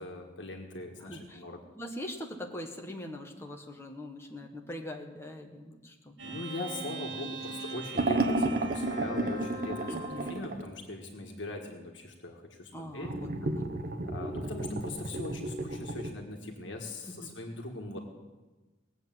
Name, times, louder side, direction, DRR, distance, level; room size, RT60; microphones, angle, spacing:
voice 1, 0.0-1.6 6.2-13.1 14.0-18.0, left 2 dB, 80° left, 2 dB, 1.6 m, -41 dB
voice 2, 1.0-1.5 1.7-6.4 7.2-7.3 9.9-10.3 12.7-13.3 17.1-17.3 17.9-18.0, left 1 dB, 15° left, 1 dB, 1.5 m, -42 dB
sound 1, 6.2-10.4, right 3 dB, 80° right, 3.2 m, -41 dB
sound 2, 8.0-10.7 13.0-16.1, right 2 dB, 50° right, 1.1 m, -32 dB
19.0 x 8.0 x 7.6 m, 1.2 s
head